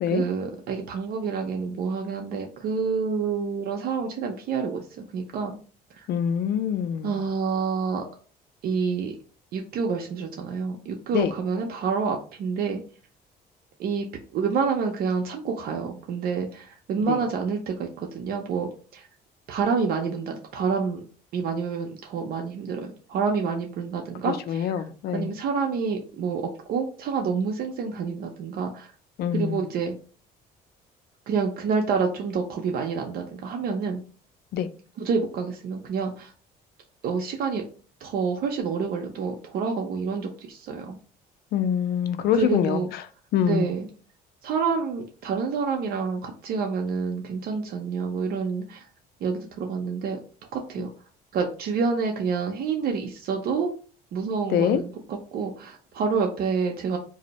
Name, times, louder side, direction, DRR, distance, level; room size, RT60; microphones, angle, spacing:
voice 1, 0.1-5.6 5.9-6.1 7.0-8.0 8.6-9.2 9.5-12.8 13.8-14.1 14.3-19.1 19.5-21.0 21.3-24.8 25.1-28.9 29.3-29.9 31.3-34.0 35.0-36.3 37.0-37.6 38.0-41.0 42.3-42.9 43.4-43.9 44.4-48.9 49.2-50.2 50.5-50.9 51.3-53.7 54.1-57.0, right 5 dB, 65° right, 0.5 m, -28 dB
voice 2, 6.1-7.1 11.1-11.3 17.1-17.2 24.3-25.3 29.2-29.6 34.5-34.7 41.5-42.8 43.3-43.7 54.5-54.8, left 9 dB, 65° left, 0.4 m, -24 dB
2.6 x 2.0 x 4.0 m
cardioid pair, 110°, 17 cm